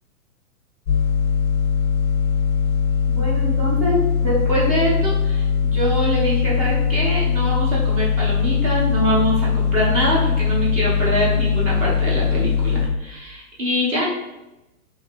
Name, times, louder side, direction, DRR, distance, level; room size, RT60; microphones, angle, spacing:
sound 1, 0.9-12.9, left 7 dB, 30° left, 0.4 m, -20 dB
voice 1, 3.1-14.1, equal, 25° right, -5 dB, 0.4 m, -24 dB
2.7 x 2.3 x 2.2 m, 0.96 s
hypercardioid pair, 140°, 44 cm